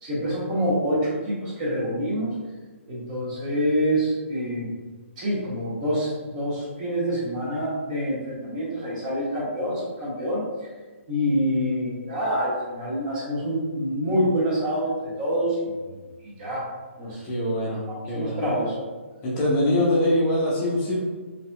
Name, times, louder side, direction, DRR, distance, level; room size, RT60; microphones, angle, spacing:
voice 1, 0.0-2.3 2.9-4.7 5.2-10.4 11.1-15.8 16.2-16.7 17.0-17.2 18.1-18.8, equal, 30° right, -6 dB, 1.4 m, -26 dB
voice 2, 17.2-18.4 19.2-21.0, left 1 dB, 25° left, -6 dB, 0.7 m, -23 dB
4.0 x 2.8 x 2.2 m, 1.3 s
figure-of-eight pair, 140°, 7 cm